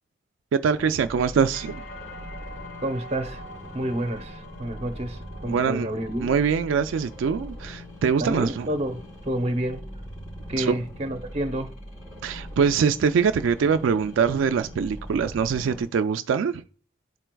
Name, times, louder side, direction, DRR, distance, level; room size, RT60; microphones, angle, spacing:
voice 1, 0.5-1.8 5.5-5.9 6.2-8.7 10.6-10.8 12.2-16.6, right 6 dB, 80° right, 0.3 m, -23 dB
sound 1, 0.6-15.8, equal, 40° left, 3.1 m, -41 dB
sound 2, 1.5-9.4 9.8-10.5, left 1 dB, 70° left, 1.0 m, -46 dB
voice 2, 2.8-3.4 3.7-6.3 8.2-9.9 10.5-11.8, right 1 dB, 35° right, 0.7 m, -29 dB
11.5 x 4.4 x 2.2 m
head